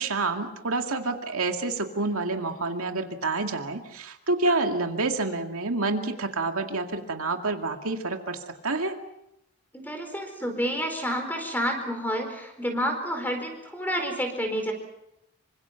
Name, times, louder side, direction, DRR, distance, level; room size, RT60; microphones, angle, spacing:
voice 1, 0.0-9.0, right 3 dB, 75° right, 4 dB, 2.3 m, -28 dB
voice 2, 9.7-14.7, equal, 10° left, 5 dB, 4.5 m, -29 dB
27.0 x 25.5 x 5.9 m, 0.84 s
head